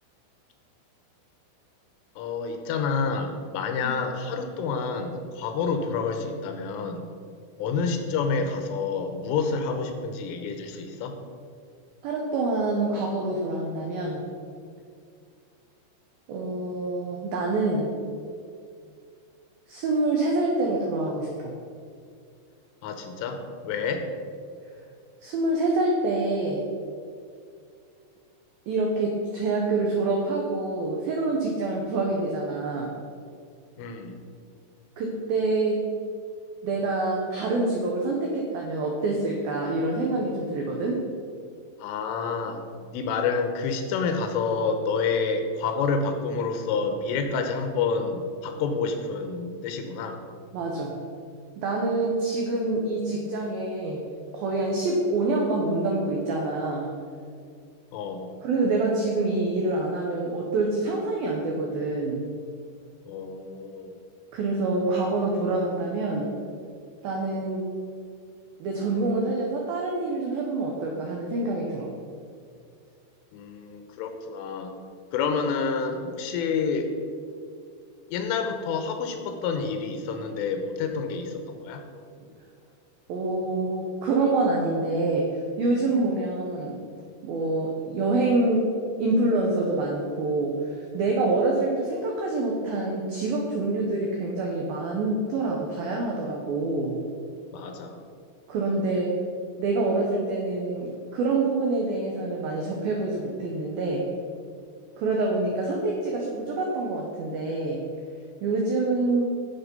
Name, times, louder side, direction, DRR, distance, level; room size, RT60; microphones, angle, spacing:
voice 1, 2.2-7.1 7.6-11.2 22.8-24.1 33.8-34.2 41.8-42.6 42.9-50.2 57.9-58.3 63.1-63.9 73.3-74.7 75.1-76.9 78.1-81.8 97.5-98.0, left 5 dB, 80° left, 6 dB, 3.3 m, -28 dB
voice 2, 12.0-14.2 16.3-17.9 19.7-21.5 25.2-26.6 28.7-32.9 35.0-35.9 36.6-41.0 50.5-51.0 51.6-54.0 54.3-56.9 58.4-62.3 64.3-66.3 67.0-67.7 68.6-71.9 83.1-85.3 85.6-86.8 87.2-97.0 98.5-99.1 99.6-104.0 105.0-107.8 108.4-109.2, right 2 dB, 85° right, -1 dB, 2.0 m, -26 dB
10.5 x 7.9 x 5.4 m, 2.3 s
omnidirectional pair, 5.9 m